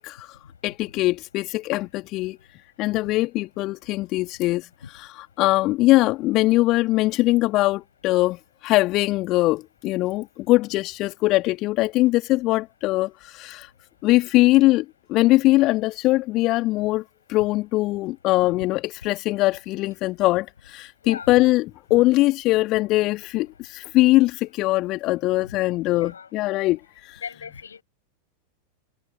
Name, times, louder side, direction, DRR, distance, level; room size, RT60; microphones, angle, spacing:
voice 1, 0.0-2.4 2.8-13.7 14.0-21.7 21.9-27.2, left 18 dB, 40° left, 1.9 m, -22 dB
voice 2, 21.0-21.4 25.5-25.6 25.8-26.3 27.2-27.8, left 6 dB, 70° left, 7.1 m, -38 dB
figure-of-eight pair, 90°, 0 cm